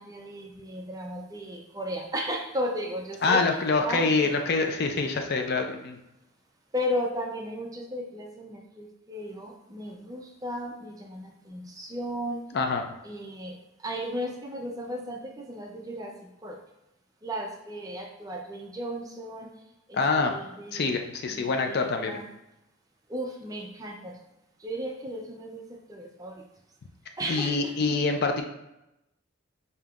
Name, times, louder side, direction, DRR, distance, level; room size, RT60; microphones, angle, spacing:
voice 1, 0.0-3.6 3.8-4.3 6.7-12.5 13.0-16.6 17.2-19.5 19.9-21.0 21.3-22.3 23.1-24.2 24.6-26.4 27.2-27.7, equal, 15° right, 0 dB, 0.5 m, -35 dB
voice 2, 3.2-6.0 12.5-12.8 19.9-20.3 20.7-22.1 27.3-28.4, left 4 dB, 50° left, 4 dB, 0.4 m, -25 dB
5.1 x 2.8 x 2.4 m, 0.89 s
head